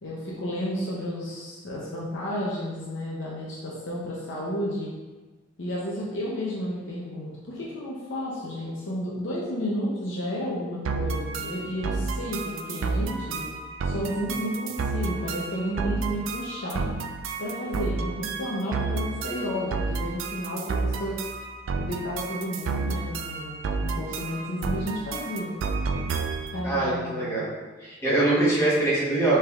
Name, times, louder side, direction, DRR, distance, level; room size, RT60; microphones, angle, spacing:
voice 1, 0.0-4.9 5.6-13.5 13.8-16.9 17.4-21.2 21.7-25.5 26.5-27.4, equal, 65° left, -5 dB, 0.7 m, -32 dB
sound 1, 10.9-26.6, right 4 dB, 80° right, 0.4 m, -31 dB
voice 2, 26.6-27.5 27.8-29.4, right 2 dB, 15° left, -8 dB, 1.2 m, -23 dB
5.5 x 3.4 x 2.4 m, 1.3 s
head